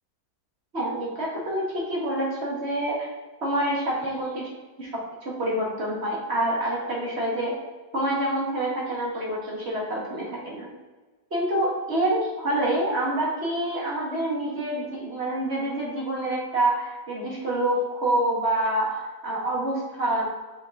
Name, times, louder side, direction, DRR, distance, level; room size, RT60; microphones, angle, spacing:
voice 1, 0.7-3.1 3.4-4.5 4.8-4.9 5.2-7.6 7.9-10.7 11.3-20.2, right 1 dB, 35° right, -4 dB, 1.7 m, -27 dB
5.8 x 4.8 x 4.1 m, 1.3 s
omnidirectional pair, 2.0 m